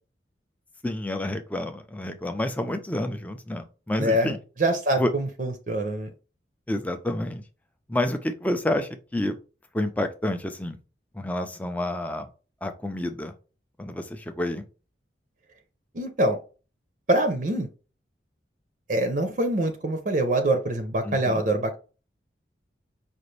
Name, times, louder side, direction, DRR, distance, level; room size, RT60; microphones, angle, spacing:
voice 1, 0.8-4.4 5.0-5.1 6.7-7.4 7.9-9.4 9.7-10.8 11.2-12.3 12.6-13.3 13.8-14.6 21.0-21.4, left 1 dB, 10° left, 7 dB, 0.4 m, -29 dB
voice 2, 4.0-6.1 15.9-16.4 17.1-17.7 18.9-21.8, right 1 dB, 45° right, 6 dB, 0.6 m, -25 dB
5.1 x 2.5 x 3.2 m, 0.34 s
head